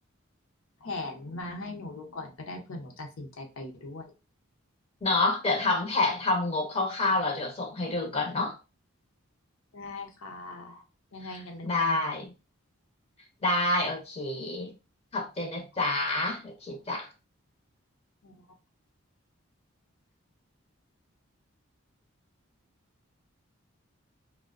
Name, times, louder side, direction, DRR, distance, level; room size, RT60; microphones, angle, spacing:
voice 1, 0.8-4.1 9.7-10.8 11.1-12.2 18.2-18.4, left 2 dB, 75° left, 0.6 m, -40 dB
voice 2, 5.0-8.6 11.2-11.4 11.6-12.3 13.4-14.7 15.1-17.1, left 2 dB, 30° left, 0.5 m, -28 dB
2.5 x 2.1 x 2.4 m
head